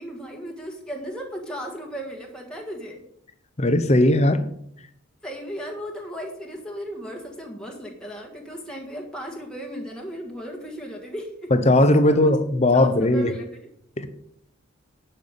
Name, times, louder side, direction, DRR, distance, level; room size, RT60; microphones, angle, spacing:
voice 1, 0.0-3.0 5.2-11.5 12.0-12.3 12.7-13.7, equal, 5° left, -1 dB, 1.6 m, -36 dB
voice 2, 3.6-4.4 11.5-13.3 14.0-14.1, left 1 dB, 30° left, 10 dB, 0.9 m, -18 dB
11.0 x 5.9 x 6.6 m, 0.70 s
head